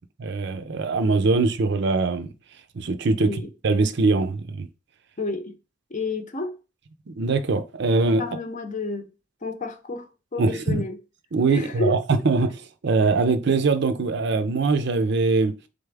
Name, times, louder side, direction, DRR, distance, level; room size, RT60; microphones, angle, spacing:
voice 1, 0.2-2.3 2.7-4.7 7.1-8.2 10.4-10.8 11.3-15.5, right 3 dB, 65° right, 0.5 m, -22 dB
voice 2, 5.2-5.6 5.9-6.6 8.2-9.1 9.4-11.0 11.5-12.0, left 3 dB, 40° left, 0.7 m, -30 dB
4.1 x 3.3 x 3.4 m
head